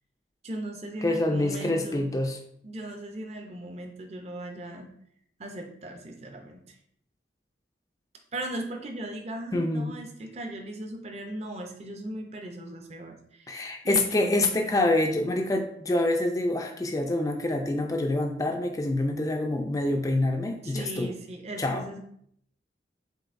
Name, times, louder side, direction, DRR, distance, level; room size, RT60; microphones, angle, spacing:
voice 1, 0.4-2.1 2.6-4.9 5.4-6.6 8.3-14.5 20.5-22.0, right 1 dB, 35° right, 3 dB, 0.6 m, -38 dB
voice 2, 1.0-2.4 9.5-9.9 13.5-21.1 21.6-22.0, left 2 dB, 20° left, 3 dB, 0.3 m, -26 dB
7.5 x 2.6 x 2.5 m, 0.67 s
head